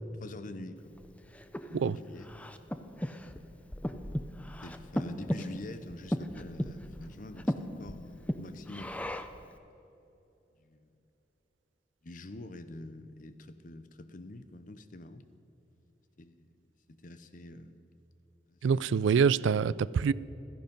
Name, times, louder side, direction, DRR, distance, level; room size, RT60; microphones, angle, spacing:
voice 1, 0.2-1.0 1.7-2.3 4.6-9.2 10.6-10.9 12.0-15.2 16.2-16.5 16.9-17.8 18.5-18.9, left 1 dB, 45° left, 0.7 m, -46 dB
Breathing, 1.0-9.5, equal, 5° left, 0.5 m, -37 dB
voice 2, 18.6-20.1, right 6 dB, 90° right, 0.3 m, -25 dB
16.0 x 14.0 x 5.3 m
head